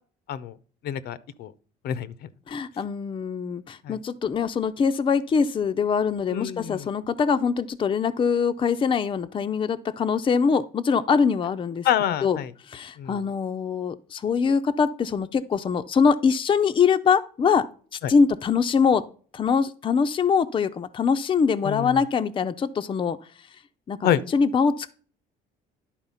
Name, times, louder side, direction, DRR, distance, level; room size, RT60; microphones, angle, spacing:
voice 1, 0.8-1.5 1.8-2.1 3.8-4.0 6.3-6.9 11.8-12.5 13.0-13.1 18.0-18.1 21.6-22.0 24.0-24.2, left 10 dB, 70° left, 0.7 m, -26 dB
voice 2, 2.5-11.9 12.2-12.4 12.7-17.7 18.1-19.0 19.3-23.2 23.9-24.9, left 6 dB, 30° left, 0.5 m, -23 dB
10.5 x 4.3 x 5.6 m
cardioid pair, 110°, 17 cm